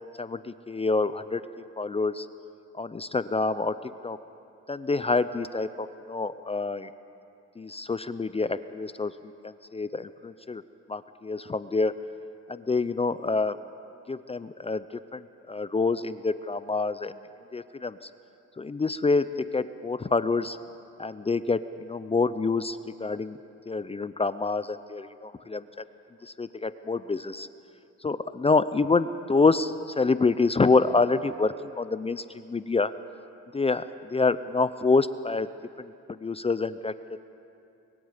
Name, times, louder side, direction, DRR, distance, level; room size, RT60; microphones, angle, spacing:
voice 1, 0.2-2.3 2.7-4.2 4.7-6.9 7.6-10.6 10.9-11.9 12.5-13.6 14.1-14.8 15.1-17.1 17.5-18.1 18.6-20.6 21.0-23.4 23.7-25.8 26.2-27.5 28.0-32.9 33.5-35.5 35.8-35.9 36.2-37.2, left 3 dB, 20° left, 13 dB, 0.5 m, -27 dB
24.0 x 21.5 x 5.1 m, 2.6 s
cardioid pair, 90°, 30 cm